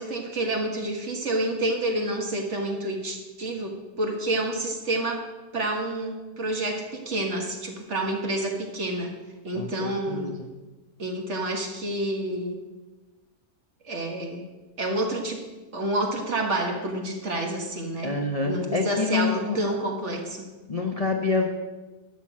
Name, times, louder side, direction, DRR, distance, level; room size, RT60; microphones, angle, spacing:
voice 1, 0.0-5.2 5.5-9.1 9.4-10.3 11.0-12.6 13.8-14.4 14.8-15.4 15.7-18.2 18.4-20.5, right 1 dB, 45° right, 2 dB, 1.7 m, -29 dB
voice 2, 9.5-10.5 18.0-19.6 20.7-21.5, left 4 dB, 30° left, 2 dB, 0.7 m, -27 dB
13.0 x 5.9 x 7.5 m, 1.2 s
omnidirectional pair, 1.8 m